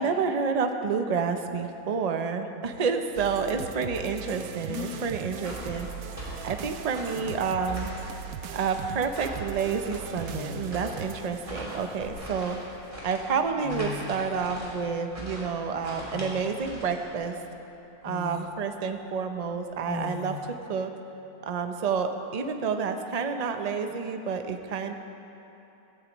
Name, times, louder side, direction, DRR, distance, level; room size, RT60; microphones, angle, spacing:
voice 1, 0.0-7.9 8.5-12.6 13.0-17.3 18.0-20.4 20.7-20.9 21.4-24.9, right 5 dB, 50° right, 6 dB, 0.5 m, -29 dB
sound 1, 3.1-12.2, right 8 dB, 75° right, 1.0 m, -40 dB
sound 2, 4.7-5.2 6.7-6.8 7.1-7.6 9.0-9.2 10.3-11.0 11.7-12.7 13.4-13.5 13.6-14.5 16.1-16.7 17.2-17.3 18.0-18.5 19.9-20.5, left 7 dB, 85° left, 1.2 m, -39 dB
sound 3, 5.4-17.4, equal, 20° right, 3.2 m, -41 dB
16.0 x 15.0 x 3.0 m, 2.9 s
omnidirectional pair, 1.6 m